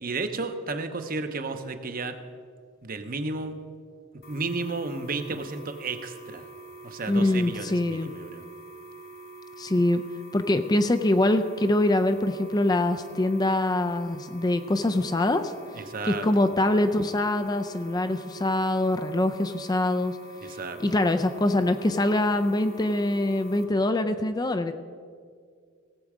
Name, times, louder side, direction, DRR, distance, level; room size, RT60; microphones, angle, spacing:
voice 1, 0.0-2.2 2.8-3.5 4.3-6.5 6.8-8.5 15.8-16.3 20.4-20.8, right 3 dB, 45° right, 8 dB, 0.8 m, -33 dB
sound 1, 4.2-23.6, right 2 dB, 50° left, 1.4 m, -45 dB
voice 2, 7.1-8.1 9.6-10.0 10.3-15.5 16.1-20.2 20.4-24.7, left 1 dB, 20° left, 8 dB, 0.4 m, -24 dB
17.5 x 7.6 x 4.9 m, 2.1 s
head